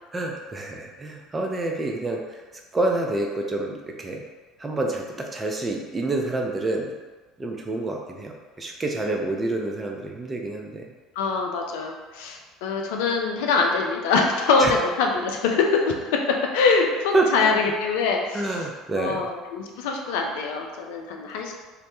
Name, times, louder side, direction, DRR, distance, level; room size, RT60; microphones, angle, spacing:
voice 1, 0.1-2.4 2.7-4.2 4.6-6.9 7.4-10.9 14.6-14.7 17.1-17.5 18.3-19.2, right 2 dB, 25° right, 1 dB, 0.4 m, -27 dB
voice 2, 11.2-16.1 16.5-18.5 19.0-21.5, left 4 dB, 70° left, 1 dB, 0.3 m, -24 dB
2.1 x 2.0 x 2.9 m, 1.3 s
figure-of-eight pair, 65°, 0 cm